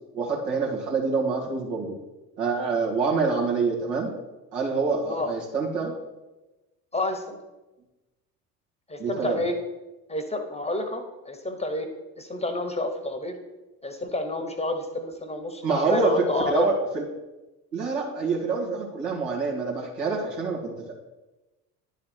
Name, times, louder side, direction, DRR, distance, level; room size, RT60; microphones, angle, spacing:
voice 1, 0.1-1.9 2.4-4.1 4.5-5.9 9.0-9.4 15.6-17.0 17.7-20.9, right 4 dB, 80° right, -3 dB, 2.0 m, -26 dB
voice 2, 6.9-7.4 8.9-9.5 10.1-11.9 12.2-13.4 13.8-16.7, left 2 dB, 15° left, 6 dB, 1.0 m, -29 dB
10.5 x 4.0 x 4.5 m, 1.1 s
hypercardioid pair, 60°, 47 cm